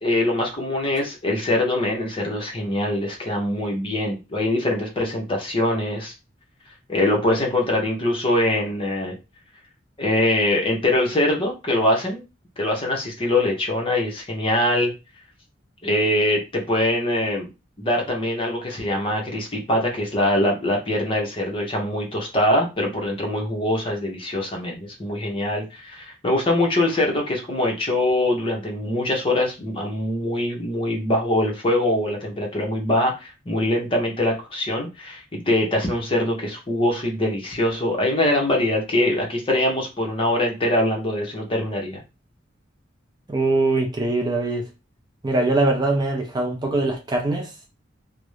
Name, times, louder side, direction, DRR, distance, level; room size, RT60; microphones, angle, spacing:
voice 1, 0.0-6.1 6.9-9.1 10.0-12.2 12.6-14.9 15.8-17.5 17.8-42.0, left 1 dB, 30° left, 0.7 m, -23 dB
voice 2, 43.3-44.7 45.2-47.5, right 2 dB, 20° right, 0.4 m, -22 dB
2.4 x 2.0 x 3.0 m
head